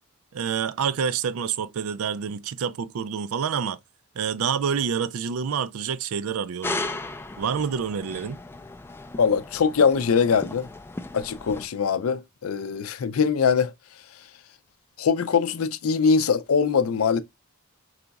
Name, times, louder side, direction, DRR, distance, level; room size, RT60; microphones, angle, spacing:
voice 1, 0.3-3.8 4.2-6.8 7.4-8.4, right 7 dB, 80° right, 0.4 m, -27 dB
sound 1, 6.6-11.7, left 2 dB, 10° left, 0.3 m, -36 dB
voice 2, 9.2-10.7 11.1-13.7 15.0-17.2, left 6 dB, 80° left, 0.5 m, -22 dB
4.8 x 3.9 x 2.2 m
head